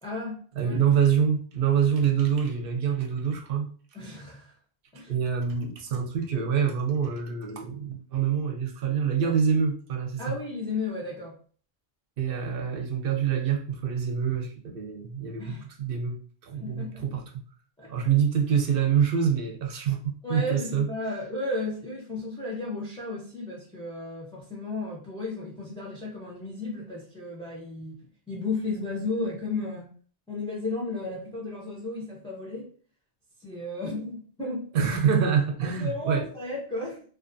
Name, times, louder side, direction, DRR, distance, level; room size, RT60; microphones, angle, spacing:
voice 1, 0.0-0.8 3.9-4.5 4.9-5.1 10.2-11.4 15.4-15.7 16.6-17.0 17.8-18.1 20.2-28.0 28.3-29.9 30.3-32.7 33.4-34.6 35.6-37.0, left 2 dB, 10° left, -4 dB, 0.3 m, -34 dB
voice 2, 0.6-3.7 5.1-10.3 12.2-16.2 16.4-17.2 17.9-20.9 34.7-36.2, right 7 dB, 65° right, 3 dB, 0.7 m, -26 dB
2.4 x 2.3 x 2.5 m, 0.42 s
omnidirectional pair, 1.1 m